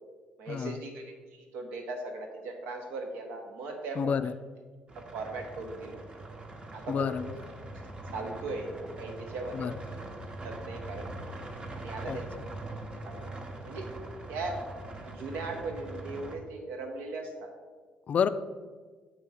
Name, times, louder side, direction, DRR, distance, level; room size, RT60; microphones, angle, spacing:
voice 1, 0.4-4.1 4.9-6.0 6.7-7.2 8.1-9.7 10.4-11.3 11.7-12.3 13.0-13.3 13.6-13.9 14.3-14.6 15.0-17.5, right 3 dB, 80° right, 3 dB, 1.0 m, -38 dB
voice 2, 4.0-4.3 6.9-7.2 9.5-9.8 12.1-12.2 18.1-18.3, left 7 dB, 45° left, 13 dB, 0.3 m, -28 dB
sound 1, 4.9-16.4, right 2 dB, 30° right, 0.9 m, -42 dB
7.7 x 3.0 x 4.8 m, 1.5 s
supercardioid pair, 75°, 3 cm